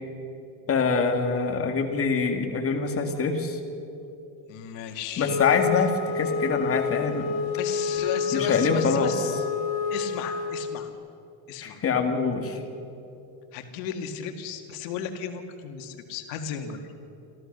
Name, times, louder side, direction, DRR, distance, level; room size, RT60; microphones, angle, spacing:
voice 1, 0.7-3.6 5.2-7.3 8.3-9.1 11.6-12.6, left 5 dB, 25° left, 4 dB, 2.1 m, -24 dB
voice 2, 4.5-5.4 7.5-9.4 9.9-10.9 11.5-11.8 13.5-16.8, left 7 dB, 90° left, 6 dB, 2.0 m, -35 dB
Wind instrument woodwind instrument, 5.2-10.5, left 6 dB, 45° left, 3.7 m, -29 dB
27.5 x 14.0 x 6.8 m, 2.8 s
cardioid pair, 130°, 49 cm